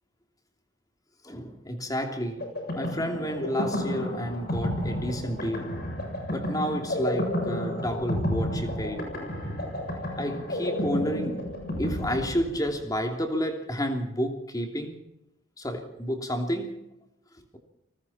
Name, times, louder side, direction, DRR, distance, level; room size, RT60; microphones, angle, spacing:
voice 1, 1.2-2.5 2.7-5.8 6.3-9.0 10.2-11.4 11.8-15.0 15.6-16.8, equal, 20° left, 4 dB, 3.1 m, -30 dB
sound 1, 2.4-12.9, left 1 dB, 55° left, 7.5 m, -31 dB
29.5 x 20.0 x 4.4 m, 0.88 s
head